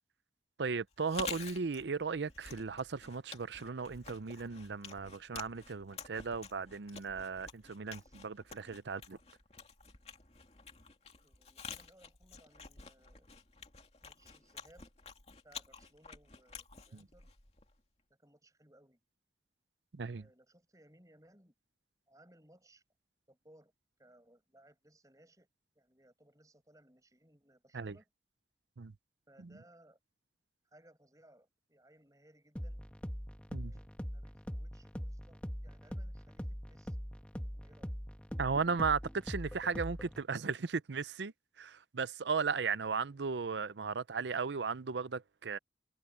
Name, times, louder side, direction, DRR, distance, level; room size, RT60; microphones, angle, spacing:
voice 1, 0.6-9.2 16.9-17.1 19.9-20.2 27.7-27.9 28.8-28.9 29.4-29.5 33.5-33.7 38.4-45.6, right 5 dB, 85° right, 0.6 m, -36 dB
Chewing mastication, 0.9-17.8, left 6 dB, 35° left, 2.7 m, -50 dB
voice 2, 11.2-13.3 14.0-14.9 15.4-17.3 18.2-19.0 20.1-21.5 22.1-22.8 23.3-23.7 24.0-25.5 25.8-28.1 29.3-30.0 30.6-32.9 33.5-37.0 37.5-37.9, right 1 dB, 20° right, 7.1 m, -64 dB
sound 1, 32.6-40.2, equal, 5° left, 1.8 m, -42 dB
head